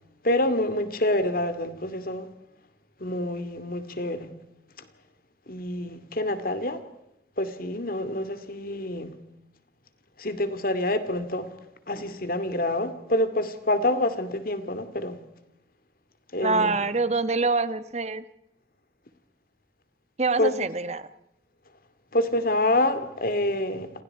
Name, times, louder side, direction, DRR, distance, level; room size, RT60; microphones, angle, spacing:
voice 1, 0.2-2.3 3.0-4.3 5.5-6.8 7.4-9.2 10.2-11.5 11.9-15.2 16.3-16.9 20.4-20.7 22.1-24.0, left 1 dB, 50° left, 2.4 m, -27 dB
voice 2, 16.4-18.2 20.2-21.1, right 3 dB, 35° right, 1.2 m, -25 dB
29.5 x 27.5 x 4.8 m
head